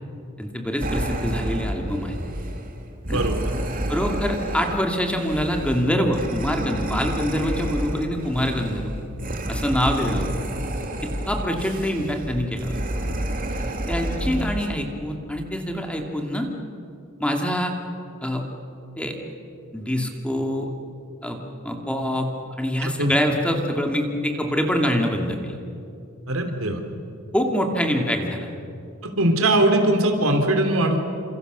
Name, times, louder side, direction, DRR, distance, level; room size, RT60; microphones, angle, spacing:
voice 1, 0.4-2.2 3.1-3.2 3.9-8.9 9.5-10.3 11.0-12.8 13.9-16.5 17.2-17.7 18.2-18.4 19.0-19.2 19.7-20.7 21.2-21.4 21.6-22.3 22.6-25.6 27.3-28.5, equal, 5° left, 2 dB, 2.4 m, -25 dB
sound 1, 0.8-14.7, right 1 dB, 45° right, 2.7 m, -30 dB
voice 2, 3.1-3.5 3.8-3.9 22.8-23.1 26.3-26.8 29.0-31.0, right 1 dB, 85° right, 4 dB, 3.6 m, -21 dB
29.5 x 27.0 x 6.8 m, 2.6 s
head